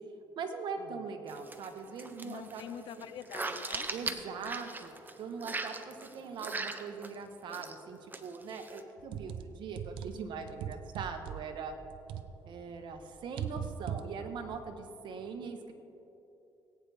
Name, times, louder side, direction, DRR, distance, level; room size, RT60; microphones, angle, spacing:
voice 1, 0.3-2.6 3.0-3.1 3.9-4.9 5.2-11.8 12.5-15.7, right 5 dB, 70° right, 6 dB, 1.2 m, -41 dB
sound 1, 1.3-1.7 2.0-5.1 5.4-7.1 7.5-7.8 8.1-8.8, right 3 dB, 20° right, 0.9 m, -39 dB
voice 2, 2.2-3.9, left 9 dB, 75° left, 13 dB, 0.6 m, -45 dB
sound 2, 9.0-12.6 12.9-14.6, right 9 dB, 85° right, 0.6 m, -40 dB
19.0 x 9.3 x 3.5 m, 2.9 s
cardioid pair, 85°, 8 cm